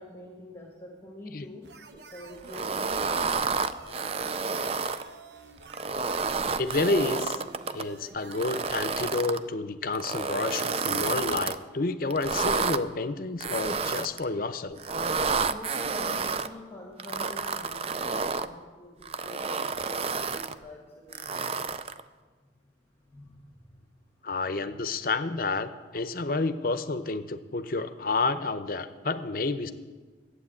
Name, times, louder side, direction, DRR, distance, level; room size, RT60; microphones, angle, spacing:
voice 1, 0.0-3.9 15.5-21.9 23.0-24.1, left 1 dB, 15° left, 0 dB, 1.7 m, -46 dB
sound 1, 1.6-8.8, right 3 dB, 75° right, 0.9 m, -49 dB
sound 2, 2.5-5.0 5.6-7.8 8.3-9.4 9.9-11.6 12.1-12.8 13.4-14.2 14.8-16.5 17.0-18.5 19.0-20.5 21.1-22.0, right 4 dB, 35° right, 0.4 m, -30 dB
voice 2, 6.6-7.4 7.7-14.8 24.2-29.7, left 3 dB, 55° left, 11 dB, 0.7 m, -30 dB
12.0 x 8.3 x 8.5 m, 1.4 s
head